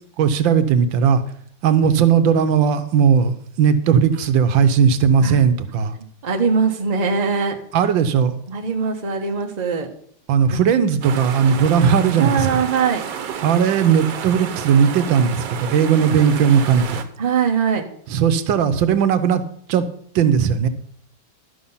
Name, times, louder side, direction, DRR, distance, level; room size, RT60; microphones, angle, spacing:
voice 1, 0.2-1.2 1.6-5.9 7.7-8.3 10.3-12.6 13.4-17.0 18.1-19.4 19.7-19.8 20.1-20.7, right 7 dB, 85° right, 10 dB, 1.5 m, -17 dB
voice 2, 6.2-7.6 8.5-9.9 10.5-10.6 12.2-13.0 17.2-17.8, right 6 dB, 30° right, 3 dB, 0.9 m, -21 dB
sound 1, 11.0-17.0, right 7 dB, 70° right, 1.5 m, -31 dB
11.5 x 5.8 x 5.5 m, 0.62 s
omnidirectional pair, 2.1 m